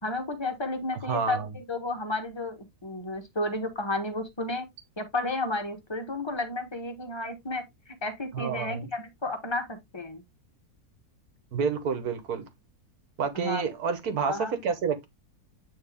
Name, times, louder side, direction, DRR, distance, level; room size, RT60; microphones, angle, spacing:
voice 1, 0.0-4.7 5.0-10.2 13.3-13.6 14.3-14.5, left 2 dB, 20° left, 1.2 m, -32 dB
voice 2, 1.0-1.5 8.3-8.9 11.5-12.5 13.2-15.1, right 6 dB, 70° right, 1.5 m, -29 dB
9.0 x 3.3 x 3.5 m
omnidirectional pair, 1.6 m